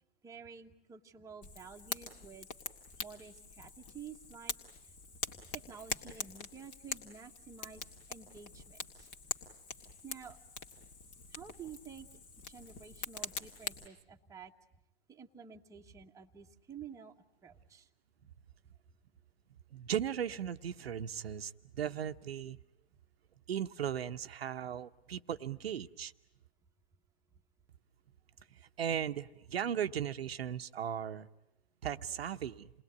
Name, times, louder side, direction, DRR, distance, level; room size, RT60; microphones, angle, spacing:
voice 1, 0.2-2.5 3.0-4.5 4.8-4.9 5.3-7.8 8.1-9.1 10.0-10.4 11.3-12.1 12.5-14.5 15.1-17.1 17.4-17.9, right 6 dB, 10° right, 1.3 m, -51 dB
Fire, 1.4-13.9, left 4 dB, 35° left, 2.1 m, -44 dB
voice 2, 19.7-22.6 23.5-26.1 28.8-31.3 31.8-32.7, right 9 dB, 80° right, 0.9 m, -37 dB
28.5 x 20.0 x 9.4 m
hypercardioid pair, 125°, 30 cm